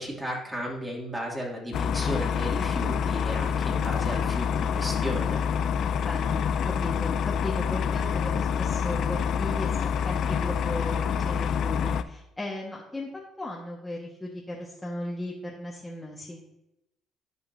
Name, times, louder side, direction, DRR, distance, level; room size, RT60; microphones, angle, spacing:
voice 1, 0.0-5.5, equal, 15° right, -3 dB, 2.6 m, -34 dB
sound 1, 1.7-12.0, left 7 dB, 65° left, 0.4 m, -27 dB
voice 2, 6.0-13.1 13.4-16.4, left 1 dB, 15° left, -4 dB, 1.5 m, -36 dB
11.5 x 5.4 x 2.7 m, 0.87 s
cardioid pair, 90°, 0 cm